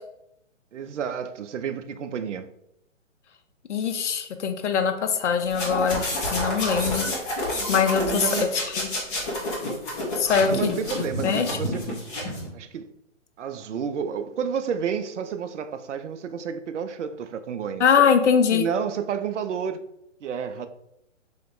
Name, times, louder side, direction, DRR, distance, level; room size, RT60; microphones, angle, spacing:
voice 1, 0.7-2.5 8.0-8.5 10.4-12.0 12.5-12.9 13.4-17.9 18.5-19.8 20.2-20.7, right 7 dB, 70° right, 0.5 m, -30 dB
voice 2, 3.7-6.0 6.3-7.1 7.7-8.2 8.7-8.9 10.1-10.8 11.2-11.5 17.8-18.6, left 6 dB, 65° left, 0.7 m, -22 dB
sound 1, 5.4-12.5, left 1 dB, 25° left, 1.3 m, -29 dB
3.5 x 3.0 x 3.7 m
hypercardioid pair, 140°, 38 cm